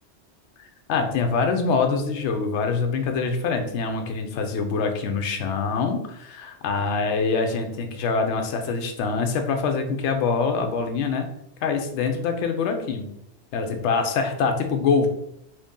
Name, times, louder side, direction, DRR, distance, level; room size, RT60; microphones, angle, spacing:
voice 1, 0.6-11.3 11.6-13.1 13.5-15.1, left 4 dB, 80° left, 5 dB, 0.9 m, -24 dB
2.9 x 2.7 x 3.6 m, 0.77 s
omnidirectional pair, 1.2 m